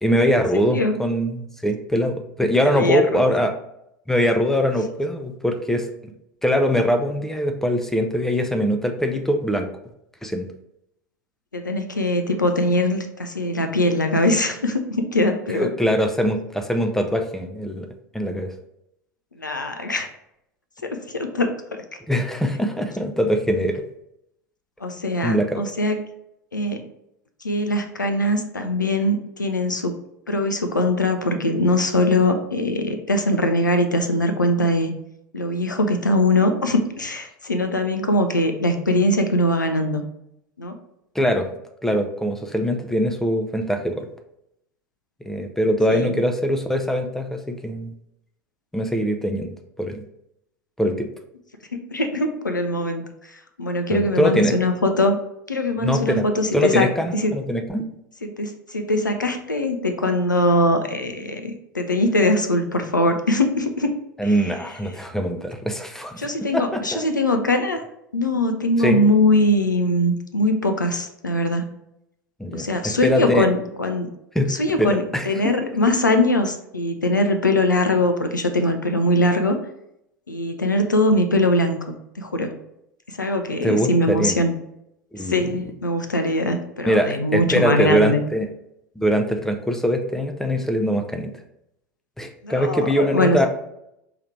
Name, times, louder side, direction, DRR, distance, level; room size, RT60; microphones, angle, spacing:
voice 1, 0.0-3.5 4.1-6.1 6.4-9.7 10.2-10.5 15.5-17.9 18.1-18.5 22.1-23.9 25.2-25.6 41.1-41.5 41.8-44.1 45.2-47.9 48.7-49.5 49.8-50.0 50.8-51.1 53.9-54.5 55.8-56.3 56.5-57.8 64.2-67.0 68.8-69.0 72.4-73.5 74.3-75.7 83.6-84.4 85.1-85.4 86.8-88.5 89.0-91.3 92.2-93.5, equal, 5° left, 5 dB, 0.5 m, -22 dB
voice 2, 2.7-3.3 11.5-15.7 19.4-20.1 20.8-21.8 24.8-26.0 26.5-26.8 27.4-29.9 30.3-34.9 35.3-40.0 40.6-40.7 45.9-46.1 51.9-53.0 53.6-55.2 55.5-57.3 58.2-63.9 64.2-64.3 66.2-67.8 68.1-71.7 72.5-74.1 74.5-79.6 80.3-82.5 83.1-84.6 85.2-88.2 92.4-93.5, left 1 dB, 90° left, 7 dB, 0.4 m, -21 dB
4.8 x 2.9 x 3.2 m, 0.80 s
figure-of-eight pair, 80°, 10 cm